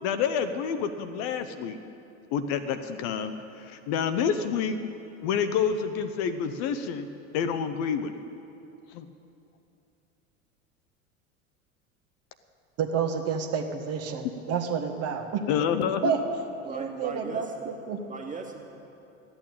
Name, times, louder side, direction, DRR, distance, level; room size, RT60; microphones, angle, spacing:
voice 1, 0.0-1.8 2.3-4.8 5.2-8.1 8.9-9.1 15.5-16.1, left 7 dB, 45° left, 9 dB, 0.8 m, -28 dB
voice 2, 12.8-15.4 16.0-16.2 16.6-18.0, right 6 dB, 35° right, 5 dB, 1.4 m, -29 dB
voice 3, 16.6-17.7 18.1-18.6, right 4 dB, 20° right, 2 dB, 2.0 m, -38 dB
13.0 x 8.9 x 8.9 m, 2.7 s
figure-of-eight pair, 80°, 40 cm